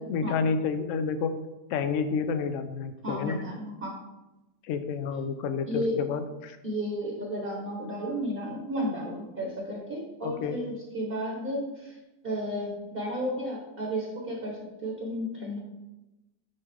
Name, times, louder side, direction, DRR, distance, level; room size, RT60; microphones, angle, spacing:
voice 1, 0.1-1.3 1.7-3.4 4.7-6.6 10.2-10.6, left 5 dB, 75° left, 9 dB, 0.7 m, -29 dB
voice 2, 3.0-3.9 5.7-5.9 6.6-12.0 12.2-15.6, equal, 35° right, -2 dB, 1.1 m, -33 dB
9.4 x 3.6 x 3.4 m, 1.0 s
omnidirectional pair, 1.9 m